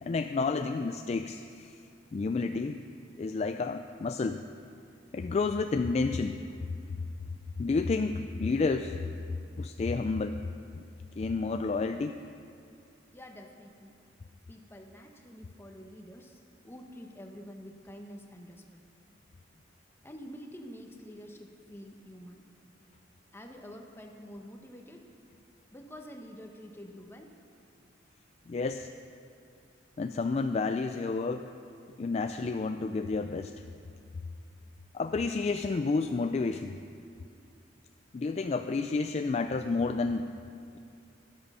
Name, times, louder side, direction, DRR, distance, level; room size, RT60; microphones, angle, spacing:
voice 1, 0.0-1.8 2.1-2.8 3.2-4.5 5.1-6.5 7.6-9.0 9.6-10.4 11.2-12.2 28.5-28.9 30.0-31.5 32.0-33.5 34.9-36.8 38.1-40.4, left 4 dB, 35° left, 7 dB, 0.3 m, -30 dB
voice 2, 13.1-14.0 14.5-18.8 20.0-22.4 23.3-25.0 25.7-27.3, equal, 15° left, 2 dB, 1.0 m, -48 dB
12.5 x 10.5 x 5.5 m, 2.6 s
head